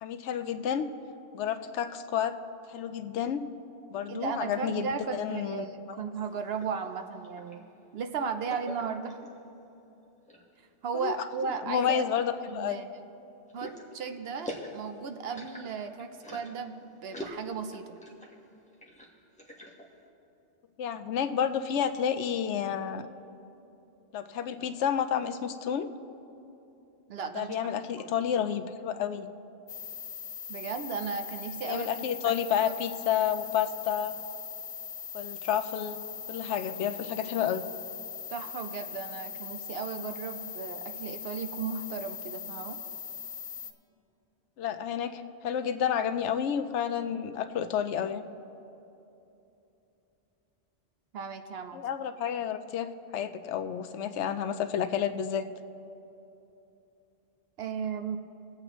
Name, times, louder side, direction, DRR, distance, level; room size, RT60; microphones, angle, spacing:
voice 1, 0.0-0.9 1.3-2.4 2.7-3.4 3.9-6.0 11.0-11.2 11.6-12.8 20.8-23.1 24.1-25.9 27.3-29.3 31.6-34.1 35.1-36.0 36.3-37.6 44.6-48.2 51.7-55.5, left 8 dB, 80° left, 10 dB, 0.9 m, -30 dB
voice 2, 4.1-7.6 7.9-9.2 10.8-12.0 12.5-12.9 13.5-18.0 27.1-27.6 28.0-28.1 30.5-31.9 32.2-32.3 38.3-42.8 51.1-51.8 57.6-58.2, right 6 dB, 65° right, 7 dB, 0.8 m, -35 dB
sound 1, 6.2-7.6 8.5-9.4 10.0-10.5 11.0-11.1 11.8-12.9 13.5-16.7 17.1-18.4 18.7-19.9, equal, 5° left, 1.1 m, -44 dB
sound 2, 29.7-43.7, left 7 dB, 50° left, 0.5 m, -41 dB
21.5 x 8.0 x 3.0 m, 2.9 s
omnidirectional pair, 1.2 m